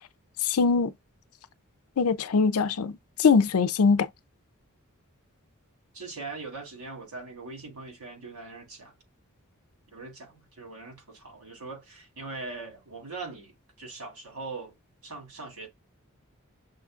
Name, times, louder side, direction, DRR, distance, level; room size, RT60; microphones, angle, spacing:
voice 1, 0.4-0.9 2.0-4.1, left 5 dB, 80° left, 0.5 m, -22 dB
voice 2, 5.9-8.9 9.9-13.5 13.8-14.7 15.0-15.7, right 3 dB, 90° right, 2.9 m, -41 dB
6.1 x 2.4 x 2.4 m
head